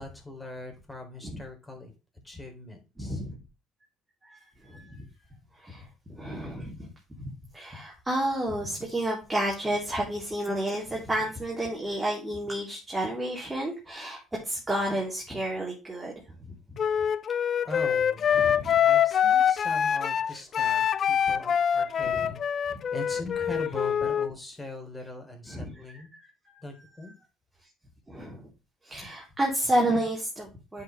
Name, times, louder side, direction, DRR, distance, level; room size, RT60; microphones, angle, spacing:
voice 1, 0.0-1.9 2.2-3.2 17.6-18.3 18.8-26.1 26.6-27.1, left 2 dB, 10° left, 2 dB, 4.0 m, -41 dB
voice 2, 3.0-3.4 4.2-5.0 5.5-6.9 7.2-16.8 18.3-18.8 21.9-22.3 22.7-22.8 25.5-26.3 26.5-26.6 28.1-28.5 28.8-30.8, right 1 dB, 15° right, -3 dB, 3.8 m, -31 dB
Wind instrument woodwind instrument, 16.8-24.3, left 8 dB, 50° left, 0.5 m, -25 dB
9.0 x 5.8 x 3.4 m, 0.29 s
supercardioid pair, 70°, 0 cm